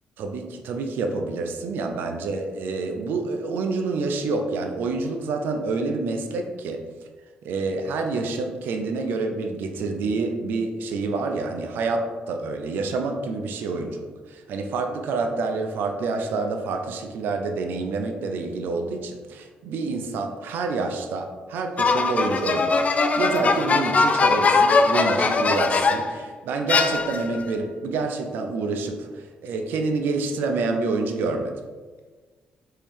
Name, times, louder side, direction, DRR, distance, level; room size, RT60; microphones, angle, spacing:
voice 1, 0.2-6.9 7.4-31.6, right 3 dB, 70° right, 5 dB, 0.4 m, -28 dB
sound 1, 21.8-26.2 26.7-27.4, left 4 dB, 40° left, 0.3 m, -21 dB
3.3 x 2.7 x 2.9 m, 1.4 s
hypercardioid pair, 50°, 4 cm